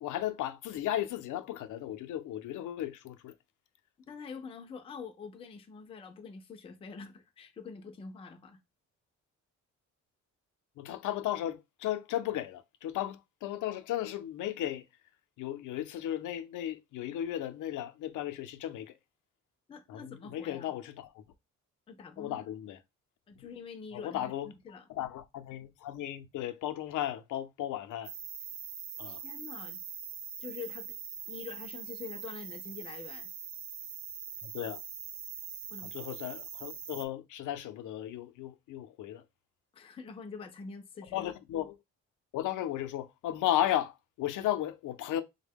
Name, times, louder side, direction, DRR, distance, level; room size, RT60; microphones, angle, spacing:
voice 1, 0.0-3.3 10.8-14.8 15.4-18.9 19.9-21.2 22.2-22.8 23.4-23.5 23.9-24.5 24.9-28.1 29.0-29.2 34.4-34.8 35.8-39.2 41.1-41.8 42.3-45.2, left 12 dB, 85° left, 0.5 m, -35 dB
voice 2, 4.0-8.6 19.7-20.7 21.9-22.4 23.3-24.8 29.0-29.8 30.4-30.9 31.3-33.3 35.7-35.9 39.7-41.3, left 5 dB, 20° left, 0.3 m, -45 dB
sound 1, 28.0-37.0, right 7 dB, 45° right, 0.4 m, -43 dB
3.5 x 2.2 x 3.4 m
cardioid pair, 180°, 30 cm